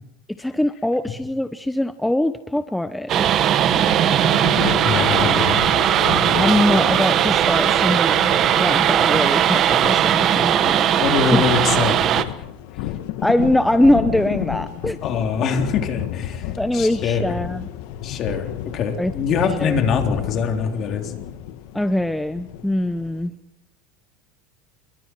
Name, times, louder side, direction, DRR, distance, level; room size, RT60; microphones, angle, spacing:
voice 1, 0.3-3.4 6.4-10.9 11.3-11.4 13.2-15.0 16.6-17.7 19.0-19.1 19.6-19.8 21.7-23.3, left 1 dB, 5° left, 10 dB, 0.7 m, -22 dB
sound 1, 3.1-12.2, right 10 dB, 40° right, 1.2 m, -18 dB
sound 2, 3.7-23.3, left 12 dB, 70° left, 1.6 m, -31 dB
voice 2, 4.8-5.6 11.0-12.3 15.0-17.3 18.0-21.1, left 6 dB, 40° left, 4 dB, 3.5 m, -23 dB
27.0 x 23.0 x 4.7 m, 0.88 s
supercardioid pair, 140°, 0 cm